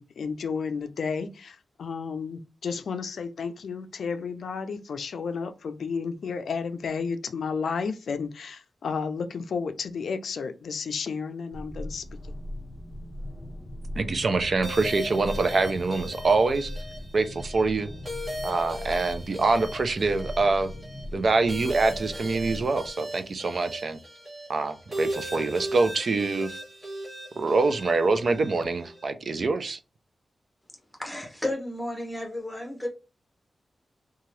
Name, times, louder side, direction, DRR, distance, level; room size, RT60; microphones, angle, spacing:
voice 1, 0.0-12.0, left 5 dB, 80° left, 0.4 m, -32 dB
sound 1, 11.5-22.9, left 1 dB, 20° left, 0.6 m, -39 dB
voice 2, 14.0-16.7 17.1-17.9 18.4-20.7 21.1-24.0 24.5-26.6 27.4-29.8, right 3 dB, 55° right, 0.4 m, -25 dB
sound 2, 14.6-29.1, equal, 25° right, 1.1 m, -38 dB
voice 3, 31.0-32.9, left 1 dB, 5° left, 1.0 m, -32 dB
2.8 x 2.3 x 3.1 m
wide cardioid pair, 110°, 0 cm